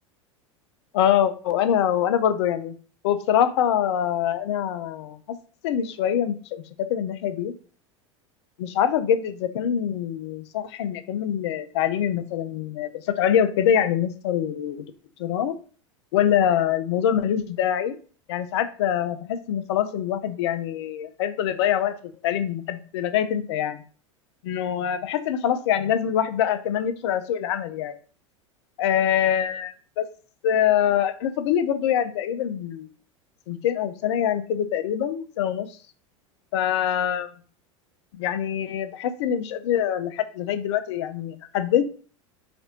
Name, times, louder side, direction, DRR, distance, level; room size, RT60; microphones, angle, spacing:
voice 1, 0.9-2.7 3.0-5.2 5.6-7.5 8.6-14.9 15.2-15.5 16.1-18.0 18.3-22.0 22.2-23.8 24.4-27.9 28.8-30.1 30.4-32.9 33.5-35.7 36.5-37.3 38.2-41.9, left 9 dB, 55° left, 11 dB, 0.4 m, -24 dB
4.1 x 2.5 x 2.8 m, 0.41 s
figure-of-eight pair, 85°, 17 cm